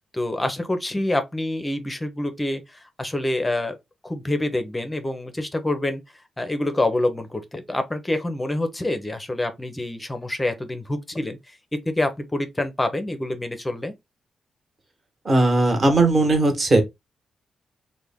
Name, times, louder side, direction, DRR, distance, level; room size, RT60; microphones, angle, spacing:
voice 1, 0.1-3.8 4.0-6.0 6.4-11.4 11.7-13.9, left 1 dB, 15° left, 0.6 m, -26 dB
voice 2, 15.2-16.8, right 2 dB, 35° right, 1.1 m, -18 dB
3.3 x 2.1 x 3.4 m
cardioid pair, 120°, 0 cm